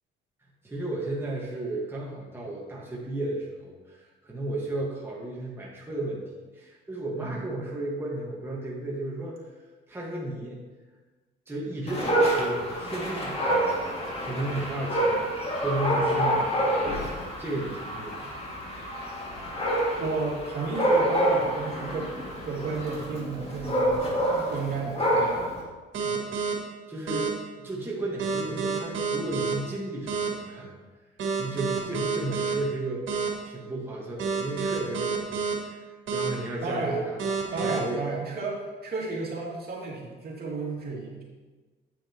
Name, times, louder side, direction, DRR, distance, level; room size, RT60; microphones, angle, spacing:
voice 1, 0.6-6.2 6.5-9.5 9.9-10.6 11.5-15.2 15.6-17.0 17.4-18.2 26.9-27.3 27.6-30.7 31.4-33.0 33.4-38.0, right 2 dB, 10° right, -5 dB, 1.7 m, -34 dB
Dog, 11.9-25.6, right 1 dB, 30° left, 2.3 m, -27 dB
voice 2, 20.0-22.1 22.4-25.4 26.0-26.3 36.6-37.0 37.5-41.2, right 3 dB, 50° right, -4 dB, 2.6 m, -33 dB
sound 1, 25.9-26.5 27.1-27.3 28.2-29.5 30.1-30.3 31.2-32.5 33.1-33.3 34.2-35.5 36.1-36.3 37.2-37.8, right 5 dB, 75° right, 2.1 m, -28 dB
8.7 x 8.7 x 3.0 m, 1.3 s
cardioid pair, 90°, 20 cm